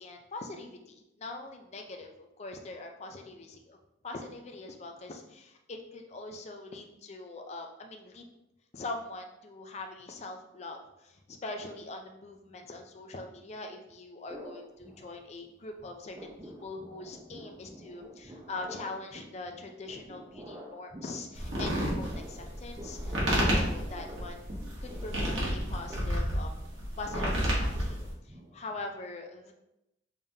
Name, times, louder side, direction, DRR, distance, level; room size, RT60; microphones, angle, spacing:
voice 1, 0.0-2.1 2.4-3.8 4.0-8.2 8.7-16.1 16.4-24.4 24.8-26.6 27.0-29.5, left 2 dB, 35° left, 4 dB, 0.4 m, -42 dB
sound 1, 14.3-15.5 15.8-28.9, equal, 20° right, 0.5 m, -49 dB
sound 2, 21.3-28.1, equal, 90° right, 1.1 m, -30 dB
3.6 x 3.5 x 2.7 m, 0.88 s
head